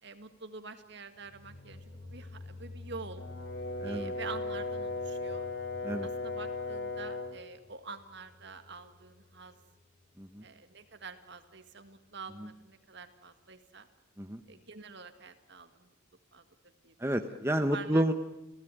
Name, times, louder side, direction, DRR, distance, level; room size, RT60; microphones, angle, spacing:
voice 1, 0.0-3.3 3.8-5.5 6.0-9.6 10.4-13.9 14.5-15.9 16.3-16.4 16.8-17.0 17.7-18.0, right 4 dB, 55° right, 8 dB, 2.0 m, -47 dB
sound 1, 1.2-10.1, left 3 dB, 35° left, 7.4 m, -50 dB
Brass instrument, 3.2-7.4, left 2 dB, 55° left, 2.6 m, -37 dB
voice 2, 3.8-4.1 5.8-6.1 10.2-10.4 12.4-12.5 14.2-14.4 17.0-18.1, right 1 dB, 10° right, 6 dB, 1.0 m, -30 dB
30.0 x 16.0 x 9.2 m, 0.94 s
head